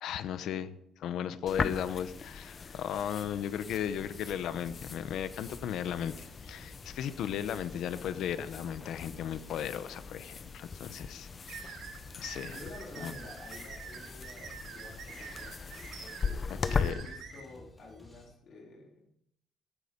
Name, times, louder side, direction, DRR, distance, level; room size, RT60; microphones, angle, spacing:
voice 1, 0.0-11.8 12.2-12.6 13.0-13.1 16.5-17.0, left 9 dB, 80° left, 12 dB, 0.9 m, -36 dB
sound 1, 1.5-16.9, left 5 dB, 35° left, 0.7 m, -39 dB
sound 2, 3.0-18.3, left 1 dB, 10° left, 5.6 m, -54 dB
sound 3, 11.5-17.4, right 6 dB, 80° right, 4.8 m, -46 dB
voice 2, 12.5-19.1, left 2 dB, 60° left, -1 dB, 3.4 m, -51 dB
16.5 x 9.7 x 5.2 m, 0.75 s
cardioid pair, 155°, 0 cm